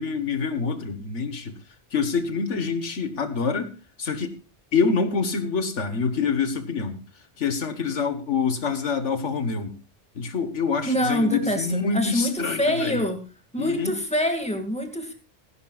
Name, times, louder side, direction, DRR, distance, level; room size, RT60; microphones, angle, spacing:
voice 1, 0.0-1.6 1.9-3.7 4.0-4.4 4.7-7.0 7.4-9.8 10.2-13.0 13.6-13.9, left 5 dB, 85° left, 1.8 m, -26 dB
voice 2, 10.8-13.2 13.5-15.1, equal, 5° left, 2.3 m, -25 dB
17.0 x 16.0 x 2.5 m
omnidirectional pair, 1.2 m